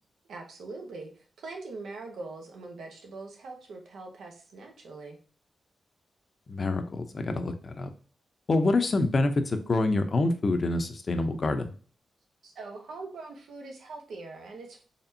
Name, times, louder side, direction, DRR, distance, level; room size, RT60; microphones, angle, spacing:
voice 1, 0.3-5.2 12.4-14.8, right 3 dB, 85° right, 2 dB, 0.9 m, -42 dB
voice 2, 6.5-7.9 8.5-11.7, left 2 dB, 45° left, 7 dB, 0.6 m, -26 dB
4.2 x 3.3 x 2.7 m, 0.39 s
cardioid pair, 80°, 0 cm